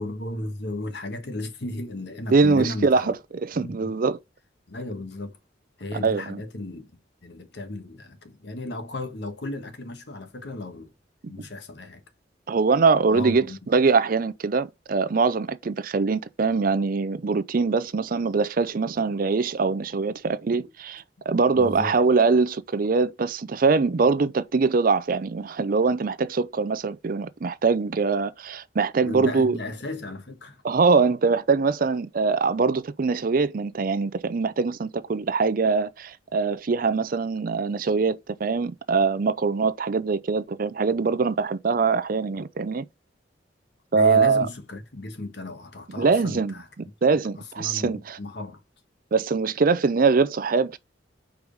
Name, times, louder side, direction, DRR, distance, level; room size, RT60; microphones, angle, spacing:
voice 1, 0.0-3.1 3.6-3.9 4.7-5.4 5.8-6.9 7.2-10.9 11.3-12.0 13.1-13.6 20.6-20.7 21.5-22.0 29.0-30.6 43.9-46.7 47.4-48.6, left 2 dB, 65° left, 1.4 m, -35 dB
voice 2, 2.3-3.1 3.4-4.2 6.0-6.4 12.5-29.6 30.6-42.9 43.9-44.5 46.0-46.5 47.0-48.2 49.1-50.8, right 4 dB, 50° right, 0.5 m, -23 dB
5.0 x 4.7 x 5.2 m
head